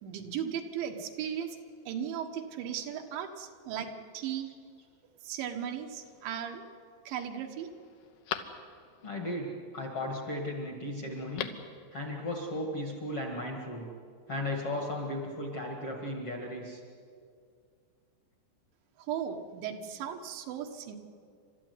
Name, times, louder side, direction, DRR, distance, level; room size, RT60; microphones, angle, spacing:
voice 1, 0.0-1.6 1.9-4.5 5.2-6.7 7.1-7.7 19.0-21.0, right 8 dB, 75° right, 4 dB, 3.6 m, -36 dB
Telephone, 6.0-6.6 7.1-7.2 7.6-9.1 11.1-11.8 12.0-12.1, left 11 dB, 70° left, 2.7 m, -41 dB
voice 2, 9.0-11.5 11.9-13.9 14.3-16.8, left 1 dB, 45° left, 1 dB, 2.0 m, -35 dB
29.5 x 13.0 x 9.7 m, 2.2 s
omnidirectional pair, 5.4 m